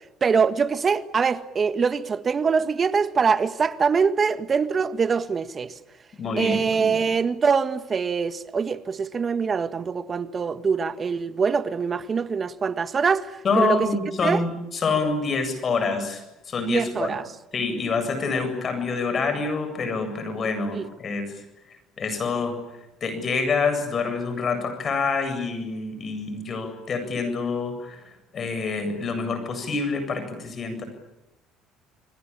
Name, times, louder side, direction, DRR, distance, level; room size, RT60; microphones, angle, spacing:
voice 1, 0.2-5.7 6.4-13.3 13.6-13.9 14.2-14.4 16.7-17.2 20.7-20.9, right 5 dB, 35° right, 1.6 m, -23 dB
voice 2, 6.1-7.1 13.4-17.1 17.5-21.4 22.0-22.5 23.0-30.8, left 4 dB, 40° left, 8.0 m, -27 dB
30.0 x 21.5 x 8.8 m
supercardioid pair, 80°, 0 cm